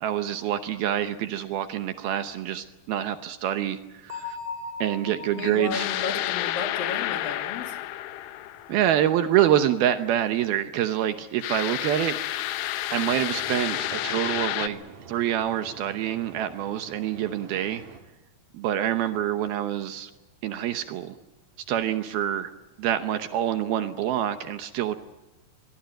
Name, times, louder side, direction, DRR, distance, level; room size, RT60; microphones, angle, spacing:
voice 1, 0.0-4.4 4.8-5.9 8.7-12.1 12.9-14.8 15.1-17.8 18.5-20.1 20.4-21.2 21.7-22.5 22.8-25.0, right 11 dB, 75° right, 9 dB, 2.6 m, -26 dB
Bell, 4.1-7.8, left 4 dB, 15° right, 2.6 m, -40 dB
voice 2, 5.3-7.8, left 4 dB, 60° left, 5 dB, 4.0 m, -33 dB
sound 1, 5.7-9.1 11.4-14.7, left 14 dB, 80° left, 3.1 m, -30 dB
sound 2, 12.9-18.0, right 5 dB, 50° right, 2.8 m, -46 dB
24.5 x 22.0 x 7.8 m, 1.1 s
omnidirectional pair, 5.0 m